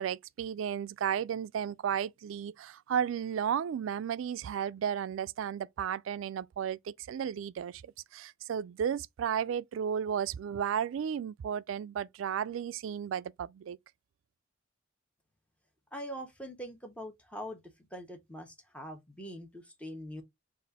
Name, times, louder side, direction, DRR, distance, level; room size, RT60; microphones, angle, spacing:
voice 1, 0.0-7.8 8.1-13.8, right 8 dB, 70° right, 0.3 m, -33 dB
voice 2, 15.9-17.6 17.9-20.2, equal, 5° left, 1.0 m, -43 dB
4.1 x 2.5 x 4.0 m
head